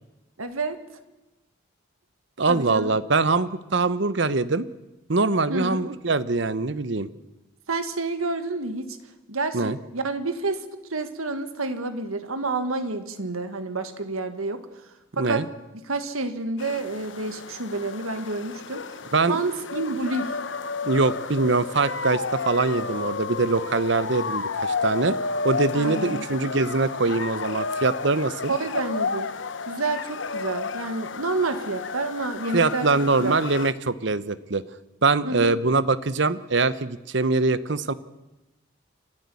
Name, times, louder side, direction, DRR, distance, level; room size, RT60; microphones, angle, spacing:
voice 1, 0.4-0.8 2.5-2.9 5.5-5.9 7.7-9.0 9.3-10.6 10.9-14.6 15.2-15.4 15.8-19.0 19.3-20.3 25.7-26.3 28.5-29.3 29.6-32.9 33.2-33.4 35.2-35.5, right 3 dB, 90° right, 9 dB, 1.8 m, -29 dB
voice 2, 2.4-4.7 5.1-7.1 9.5-9.8 15.2-15.4 19.1-19.4 20.8-25.2 25.4-28.5 32.5-34.6 35.0-37.9, right 3 dB, 55° right, 15 dB, 0.9 m, -23 dB
sound 1, 16.6-33.7, left 4 dB, 60° left, 0.9 m, -32 dB
29.5 x 12.0 x 8.5 m, 1.0 s
head